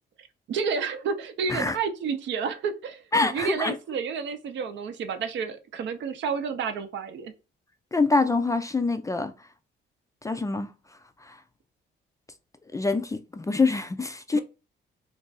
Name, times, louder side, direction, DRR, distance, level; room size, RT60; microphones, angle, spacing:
voice 1, 0.5-3.0 3.3-7.3 14.3-14.4, right 6 dB, 65° right, 0.6 m, -30 dB
voice 2, 3.1-3.7 7.9-9.3 10.2-10.7 11.2-11.4 12.7-14.4, left 3 dB, 15° left, 0.3 m, -25 dB
2.5 x 2.3 x 3.9 m
cardioid pair, 90°, 20 cm